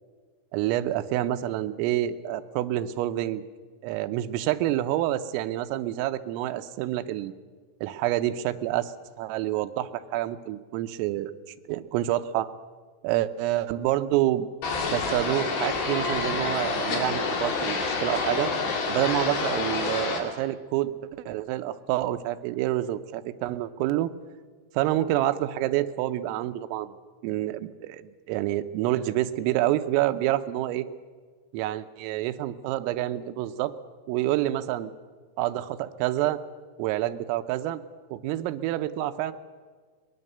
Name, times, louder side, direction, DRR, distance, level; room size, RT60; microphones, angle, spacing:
voice 1, 0.5-3.4 3.8-7.3 7.8-11.3 11.7-12.5 13.0-14.5 14.9-18.5 18.9-20.9 21.3-24.1 24.8-27.0 27.2-30.9 31.5-33.7 34.1-34.9 35.4-36.4 36.8-37.8 38.1-39.3, right 14 dB, 90° right, 11 dB, 3.5 m, -27 dB
sound 1, 14.6-20.2, left 4 dB, 60° left, 4.3 m, -28 dB
24.0 x 20.0 x 6.8 m, 1.5 s
omnidirectional pair, 5.8 m